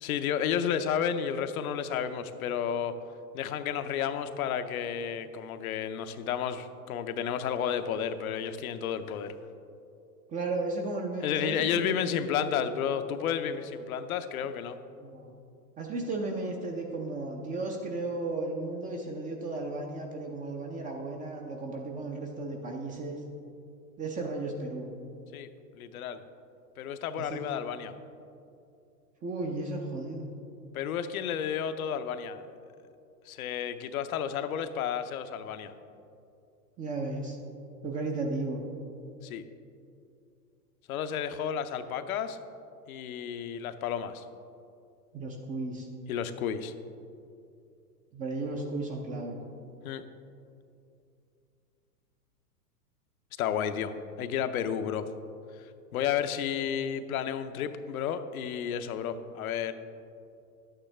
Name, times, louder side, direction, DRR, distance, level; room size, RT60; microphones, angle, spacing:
voice 1, 0.0-3.0 3.3-9.4 11.2-14.8 25.3-25.5 25.7-26.2 26.8-27.9 30.7-32.4 33.3-35.7 39.2-39.4 40.9-42.4 42.9-44.2 46.1-46.7 49.8-50.0 53.4-55.0 55.6-59.7, left 8 dB, 60° left, 10 dB, 0.7 m, -32 dB
voice 2, 10.3-12.7 15.0-15.4 15.8-23.2 24.0-24.9 27.1-27.5 29.2-30.3 36.8-37.4 37.8-38.6 45.1-45.9 48.1-49.4, right 2 dB, 15° right, 1 dB, 0.5 m, -35 dB
11.0 x 9.0 x 3.3 m, 2.6 s
hypercardioid pair, 115°, 48 cm